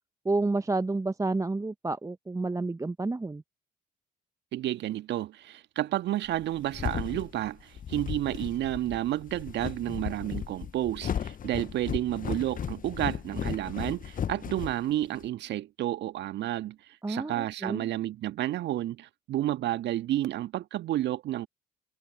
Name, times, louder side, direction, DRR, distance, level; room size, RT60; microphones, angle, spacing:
voice 1, 0.2-3.4 17.0-17.9, right 3 dB, 15° right, 1.0 m, -30 dB
voice 2, 4.5-16.8 17.1-21.5, right 13 dB, 60° right, 1.7 m, -31 dB
sound 1, 6.3-15.3, left 8 dB, 40° left, 1.0 m, -35 dB
figure-of-eight pair, 45°, 21 cm